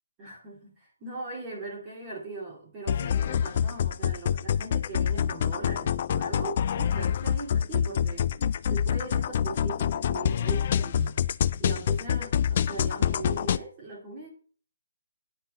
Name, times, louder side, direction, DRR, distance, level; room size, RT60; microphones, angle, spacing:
voice 1, 0.2-8.3 8.7-11.2 11.6-14.3, right 3 dB, 20° right, -3 dB, 2.7 m, -39 dB
sound 1, 2.9-13.6, left 9 dB, 35° left, 0.3 m, -26 dB
9.7 x 4.3 x 7.6 m, 0.42 s
hypercardioid pair, 170°, 0 cm